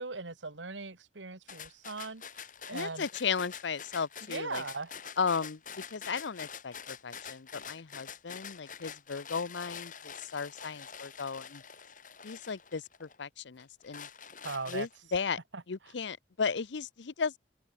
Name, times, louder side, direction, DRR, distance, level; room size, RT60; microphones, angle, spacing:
voice 1, 0.0-3.0 4.3-5.0 14.4-14.9 15.5-15.6, right 3 dB, 85° right, 2.0 m, -39 dB
sound 1, 1.5-13.2 13.6-15.2, left 7 dB, 45° left, 6.4 m, -46 dB
voice 2, 2.7-4.6 5.2-11.6 12.2-14.1 14.7-15.4 15.7-17.4, left 5 dB, 80° left, 0.7 m, -35 dB
head